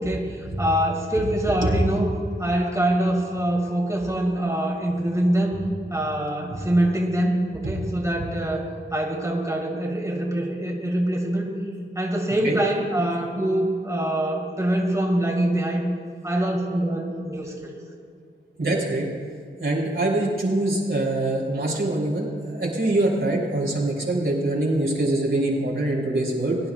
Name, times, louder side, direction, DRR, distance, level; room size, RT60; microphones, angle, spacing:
voice 1, 0.0-2.1 2.4-5.6 5.9-11.5 12.0-15.8 16.2-17.7, right 1 dB, 15° right, -2 dB, 2.2 m, -24 dB
voice 2, 18.6-19.1 19.6-26.6, right 2 dB, 75° right, -5 dB, 3.5 m, -24 dB
22.0 x 10.5 x 2.4 m, 2.3 s
wide cardioid pair, 45°, 21 cm